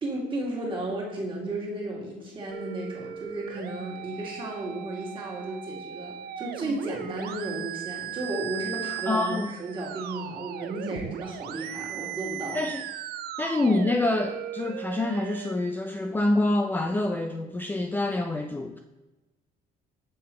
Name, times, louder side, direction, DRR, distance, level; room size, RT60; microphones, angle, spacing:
voice 1, 0.0-12.6, right 1 dB, 30° right, -3 dB, 2.0 m, -34 dB
sound 1, 2.5-15.5, right 11 dB, 65° right, 0.4 m, -38 dB
voice 2, 9.1-9.5 12.5-12.8 13.4-18.8, left 2 dB, 10° left, 4 dB, 0.3 m, -26 dB
7.6 x 3.8 x 4.3 m, 1.1 s
cardioid pair, 110°, 17 cm